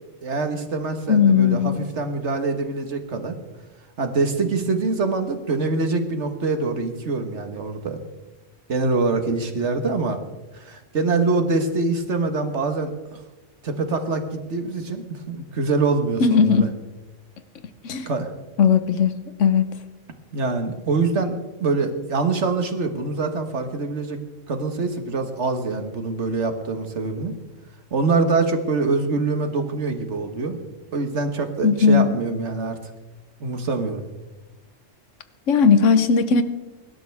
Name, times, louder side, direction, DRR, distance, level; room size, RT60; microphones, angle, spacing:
voice 1, 0.2-3.4 4.0-8.0 8.7-10.2 10.5-13.2 13.6-16.7 18.1-18.3 20.3-24.2 24.5-27.4 27.9-30.6 30.9-32.8 33.4-34.0, right 3 dB, 65° right, 6 dB, 1.8 m, -24 dB
voice 2, 1.1-1.9 16.2-16.7 17.8-18.1 18.6-19.1 19.4-19.6 31.6-32.1 35.5-36.4, left 6 dB, 75° left, 11 dB, 1.3 m, -17 dB
24.0 x 12.0 x 3.5 m, 1.1 s
omnidirectional pair, 1.3 m